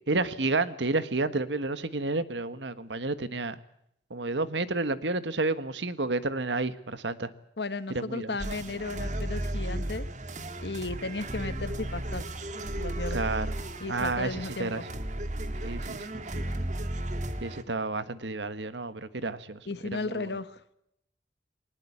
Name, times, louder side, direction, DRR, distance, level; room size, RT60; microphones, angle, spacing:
voice 1, 0.1-3.6 4.1-7.3 7.9-8.4 13.1-13.5 13.9-14.8 15.6-16.5 17.4-19.6 19.9-20.4, right 3 dB, 85° right, 13 dB, 1.5 m, -30 dB
voice 2, 7.6-10.1 10.6-12.2 12.8-13.2 13.8-14.8 19.7-20.6, left 3 dB, 70° left, 13 dB, 1.4 m, -35 dB
sound 1, 8.4-17.6, right 1 dB, 45° right, 1.9 m, -34 dB
21.5 x 19.5 x 8.6 m, 0.74 s
head